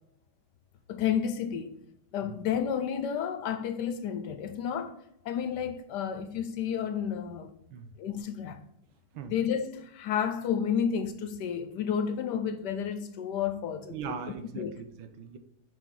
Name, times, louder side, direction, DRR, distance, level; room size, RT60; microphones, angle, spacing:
voice 1, 0.9-1.8 2.1-5.0 5.2-7.5 8.0-8.6 9.3-13.9 14.5-14.7, left 8 dB, 70° left, 1.2 m, -31 dB
voice 2, 13.8-15.4, right 6 dB, 90° right, 1.6 m, -40 dB
7.3 x 6.1 x 3.9 m
omnidirectional pair, 2.1 m